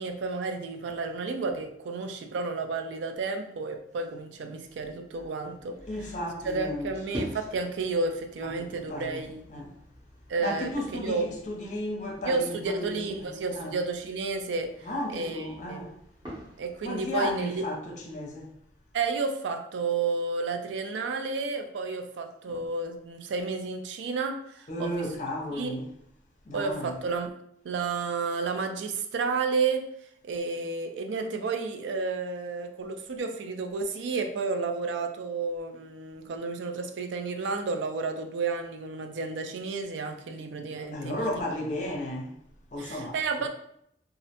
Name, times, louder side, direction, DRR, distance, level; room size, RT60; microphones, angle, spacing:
voice 1, 0.0-5.8 6.4-9.4 10.3-10.7 11.0-11.3 12.2-14.7 15.1-15.8 16.6-17.6 18.9-25.1 25.5-25.8 26.5-27.3 27.6-29.8 30.2-41.3 42.8-43.5, right 4 dB, 85° right, 0.3 m, -31 dB
sound 1, 5.4-17.4, equal, 25° right, 0.7 m, -46 dB
voice 2, 5.8-6.9 8.4-9.2 9.5-9.7 10.4-13.3 13.5-13.8 14.8-16.0 16.8-18.5 22.5-22.6 24.7-25.9 26.5-27.0 40.9-42.3 42.7-43.2, left 1 dB, 40° left, 0.5 m, -34 dB
2.4 x 2.1 x 2.8 m
head